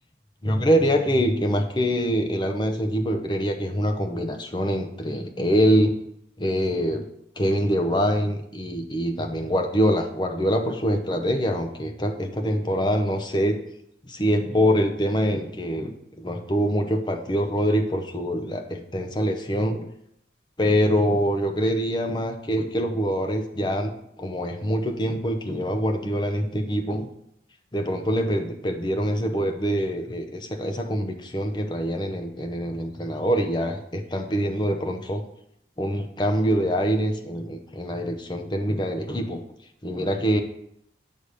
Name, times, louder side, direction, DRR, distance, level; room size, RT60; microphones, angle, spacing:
voice 1, 0.4-6.0 6.4-7.1 7.4-13.6 14.0-19.9 20.6-23.9 24.2-27.1 27.7-35.2 35.8-39.4 39.8-40.4, equal, 25° left, 4 dB, 0.8 m, -24 dB
8.3 x 3.6 x 6.3 m, 0.75 s
head